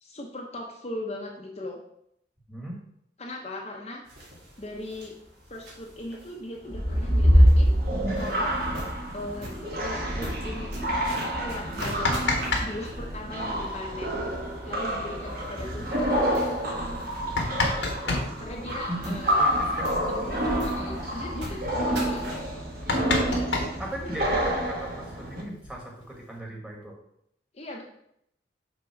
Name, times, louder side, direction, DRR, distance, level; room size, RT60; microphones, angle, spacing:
voice 1, 0.0-1.8 3.2-4.0 4.6-5.2 5.5-7.8 8.2-8.6 9.1-10.9 11.3-14.2 14.7-16.4 18.4-19.4 19.8-22.2 27.5-27.9, left 1 dB, 35° left, 0 dB, 0.8 m, -38 dB
voice 2, 2.5-2.8 18.0-20.1 22.6-22.7 23.8-27.0, right 1 dB, 5° right, -1 dB, 1.5 m, -38 dB
sound 1, 4.0-22.5, equal, 75° right, 2.2 m, -45 dB
sound 2, 6.7-25.4, equal, 50° right, 1.4 m, -26 dB
sound 3, 11.6-12.7 12.9-13.0 14.8-14.9 15.3-15.4 16.0-16.1 16.9-18.3 19.8-19.9 20.2-20.4 20.7-21.1 21.7-21.8 22.1-22.2 22.5-24.4 25.3-26.2, left 2 dB, 85° left, 1.5 m, -29 dB
6.3 x 3.8 x 5.8 m, 0.74 s
head